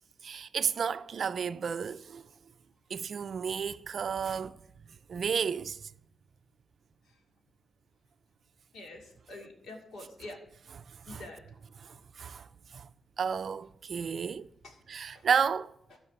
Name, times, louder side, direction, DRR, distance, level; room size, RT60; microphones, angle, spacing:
voice 1, 0.2-2.3 2.9-4.6 5.1-5.8 10.9-11.2 11.8-12.9 13.2-14.5 14.9-15.7, right 6 dB, 50° right, 0.4 m, -32 dB
voice 2, 8.7-10.4 11.1-11.4 14.6-14.8 15.1-15.3 15.9-16.0, left 2 dB, 85° left, 2.5 m, -46 dB
14.5 x 4.8 x 6.9 m
wide cardioid pair, 140°, 0 cm